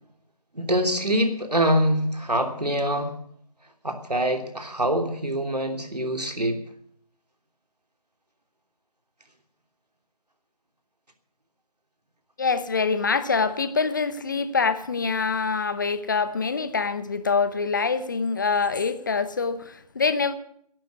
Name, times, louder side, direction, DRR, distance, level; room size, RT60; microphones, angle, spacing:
voice 1, 0.5-3.1 3.8-6.6, equal, 85° right, 3.1 m, -24 dB
voice 2, 12.4-20.3, left 5 dB, 30° left, 0.8 m, -25 dB
13.5 x 11.0 x 9.5 m
figure-of-eight pair, 155°, 20 cm